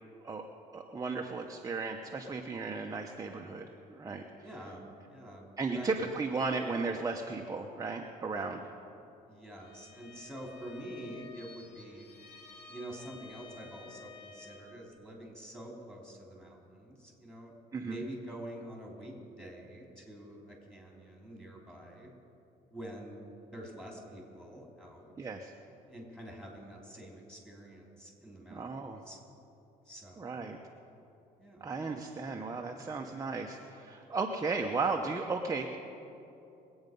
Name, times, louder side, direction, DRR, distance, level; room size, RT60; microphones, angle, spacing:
voice 1, 0.7-4.2 5.6-8.6 17.7-18.0 25.2-25.5 28.5-29.0 30.2-30.6 31.6-35.8, right 4 dB, 20° right, 2 dB, 0.8 m, -35 dB
voice 2, 4.4-6.0 9.3-12.1 12.7-17.5 17.8-22.1 22.7-23.2 23.5-25.1 25.9-28.7 29.0-29.2 29.9-30.3 31.4-31.8, right 1 dB, 5° left, -2 dB, 3.6 m, -46 dB
Bowed string instrument, 9.6-14.8, left 4 dB, 75° left, 1.8 m, -53 dB
22.0 x 8.8 x 5.3 m, 2.9 s
cardioid pair, 110°, 17 cm